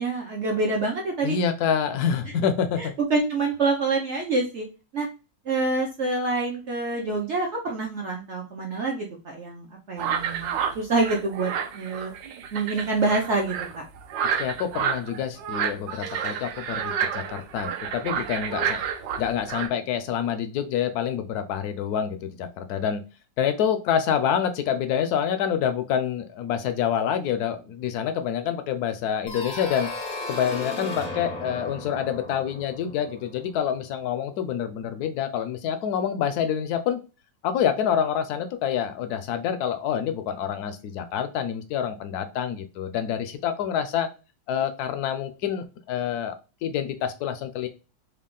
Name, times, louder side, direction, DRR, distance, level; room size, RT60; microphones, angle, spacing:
voice 1, 0.0-1.4 2.8-4.7 4.9-5.1 5.5-12.1 12.5-13.9, right 3 dB, 65° right, 0 dB, 0.7 m, -26 dB
voice 2, 1.2-2.9 14.4-18.8 19.2-23.0 23.4-29.9 30.3-37.0 37.4-44.1 44.5-46.3 46.6-47.7, left 8 dB, 70° left, 9 dB, 0.9 m, -27 dB
sound 1, 10.0-19.7, right 8 dB, 85° right, 1.3 m, -30 dB
sound 2, 29.3-33.9, left 2 dB, 55° left, 0.5 m, -35 dB
3.5 x 2.3 x 3.7 m, 0.31 s
omnidirectional pair, 1.9 m